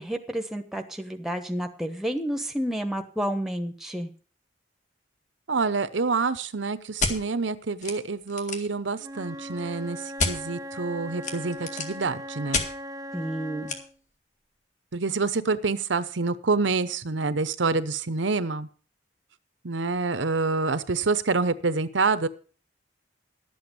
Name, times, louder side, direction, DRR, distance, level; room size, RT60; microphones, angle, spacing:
voice 1, 0.0-4.1 13.1-13.7, equal, ahead, 5 dB, 1.2 m, -30 dB
voice 2, 5.5-10.0 10.3-12.6 14.9-18.7 19.6-22.3, right 4 dB, 80° right, 13 dB, 0.8 m, -27 dB
sound 1, 7.0-7.2 7.8-7.9 8.2-8.7 10.2-10.3 11.2-12.0 12.5-12.7 13.7-13.8, left 3 dB, 40° left, 1.9 m, -27 dB
Wind instrument woodwind instrument, 9.0-14.0, equal, 20° right, 0.7 m, -39 dB
11.5 x 7.9 x 6.8 m, 0.39 s
head